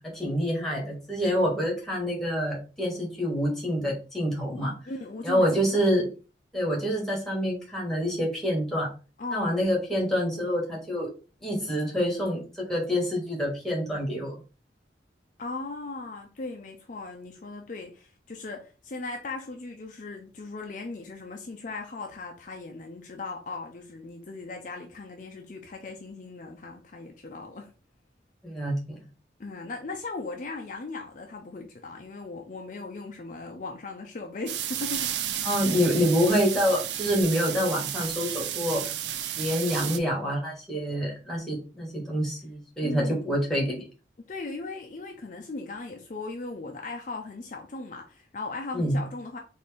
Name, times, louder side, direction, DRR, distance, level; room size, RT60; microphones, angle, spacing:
voice 1, 0.1-4.7 5.2-6.1 6.5-8.9 9.3-11.1 11.4-14.3 28.4-29.0 35.4-38.8 39.4-43.8 48.7-49.0, equal, ahead, 1.5 m, -27 dB
voice 2, 4.9-5.9 9.2-9.7 15.4-27.7 29.4-35.1 42.8-43.2 44.3-49.4, left 3 dB, 45° left, 0.5 m, -38 dB
sound 1, 34.5-40.0, right 10 dB, 80° right, 0.5 m, -32 dB
4.1 x 2.7 x 3.5 m
head